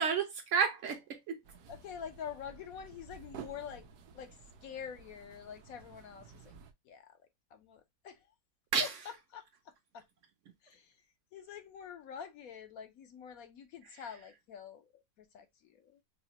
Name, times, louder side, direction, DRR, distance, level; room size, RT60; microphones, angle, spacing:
voice 1, 0.0-1.4 8.7-9.2 13.8-14.1, right 6 dB, 65° right, 0.9 m, -32 dB
sound 1, 1.4-6.7, right 6 dB, 80° right, 1.2 m, -53 dB
voice 2, 1.7-3.9 4.1-6.5 6.8-7.2 7.5-8.3 8.8-8.9 9.3-10.0 10.6-11.0 11.3-16.0, left 8 dB, 70° left, 1.1 m, -46 dB
4.8 x 2.1 x 2.8 m
omnidirectional pair, 1.6 m